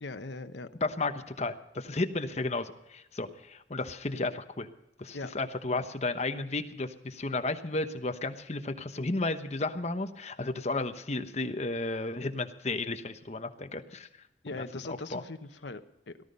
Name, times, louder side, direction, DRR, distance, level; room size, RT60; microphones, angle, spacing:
voice 1, 0.0-0.7 5.1-5.3 14.4-16.2, left 3 dB, 70° left, 9 dB, 1.0 m, -40 dB
voice 2, 0.8-4.7 5.0-14.1 14.9-15.2, left 2 dB, 35° left, 8 dB, 1.0 m, -33 dB
18.0 x 12.5 x 5.4 m, 0.87 s
head